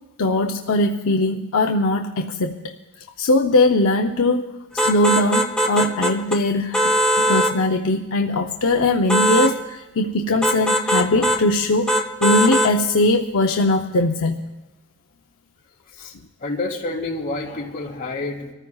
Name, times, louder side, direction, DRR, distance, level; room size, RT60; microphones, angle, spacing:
voice 1, 0.2-2.7 3.2-4.5 4.8-6.9 7.2-11.9 12.2-14.5, left 2 dB, 70° left, 3 dB, 0.6 m, -20 dB
sound 1, 4.8-6.4 6.7-7.6 9.1-9.5 10.4-11.4 11.9-12.7, equal, 5° left, 0.6 m, -20 dB
voice 2, 16.4-18.5, left 2 dB, 40° left, -2 dB, 2.6 m, -28 dB
25.5 x 14.0 x 2.3 m, 1.1 s
head